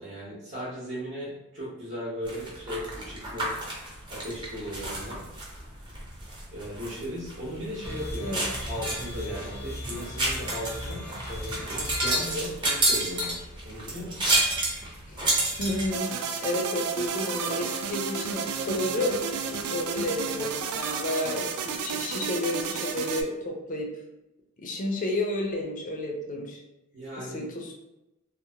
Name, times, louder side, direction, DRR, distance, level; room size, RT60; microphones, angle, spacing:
voice 1, 0.0-3.5 4.1-5.2 6.5-8.4 8.7-14.3 26.9-27.4, equal, 55° right, -8 dB, 0.8 m, -37 dB
sound 1, 2.2-15.9, right 1 dB, 20° right, 0.6 m, -30 dB
sound 2, 7.8-12.2, left 1 dB, 85° left, 0.7 m, -38 dB
voice 2, 15.6-16.1 16.4-23.9 24.6-26.6 27.1-27.7, left 1 dB, 35° left, 1 dB, 0.4 m, -31 dB
sound 3, 15.9-23.2, right 6 dB, 80° right, 0.3 m, -32 dB
2.8 x 2.0 x 2.7 m, 0.95 s
head